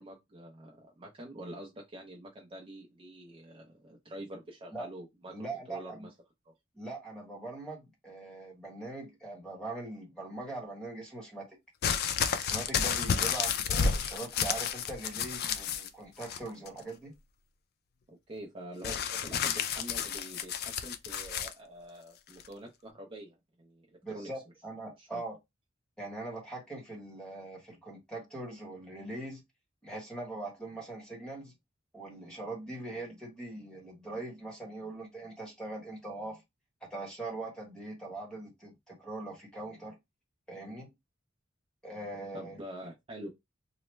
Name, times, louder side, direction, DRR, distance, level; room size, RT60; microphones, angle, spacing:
voice 1, 0.0-5.3 5.7-6.1 6.5-6.6 18.1-24.3 25.0-25.2 42.3-43.3, right 1 dB, 25° right, 0.5 m, -46 dB
voice 2, 5.3-6.1 6.7-11.6 12.3-17.1 24.0-25.4 26.0-29.4 29.8-31.5 31.9-36.4 36.9-40.0 40.5-40.9 41.8-42.6, right 2 dB, 5° left, 1.1 m, -41 dB
sound 1, 11.8-15.9 16.2-16.8 18.8-21.5 22.4-22.5, left 7 dB, 50° left, 0.3 m, -31 dB
3.1 x 2.0 x 3.2 m
head